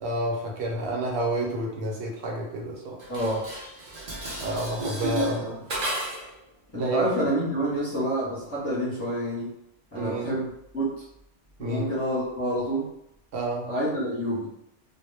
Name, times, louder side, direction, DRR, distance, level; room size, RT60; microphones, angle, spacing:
voice 1, 0.0-3.0 4.4-5.5 6.8-7.0 9.9-10.3 11.6-11.9 13.3-13.7, right 2 dB, 75° right, -2 dB, 0.9 m, -29 dB
Dishes pots and pans, 3.0-6.4, equal, 45° right, 0.6 m, -32 dB
voice 2, 3.1-3.4 5.3-5.5 6.7-9.5 9.9-11.0 11.6-12.9 13.6-14.5, right 1 dB, 15° left, -9 dB, 0.7 m, -28 dB
2.2 x 2.1 x 3.2 m, 0.80 s
omnidirectional pair, 1.1 m